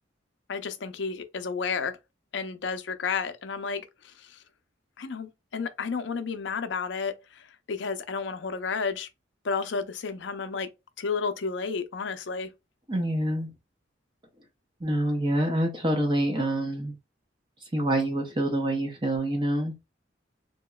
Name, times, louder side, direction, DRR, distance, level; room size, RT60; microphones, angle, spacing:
voice 1, 0.5-1.9 2.3-3.8 4.2-4.4 5.0-7.1 7.7-9.1 9.4-10.7 11.0-12.5, left 5 dB, 70° left, 0.5 m, -31 dB
voice 2, 12.9-13.5 14.8-17.0 17.7-19.7, right 1 dB, 25° right, 0.6 m, -26 dB
2.9 x 2.8 x 2.3 m
head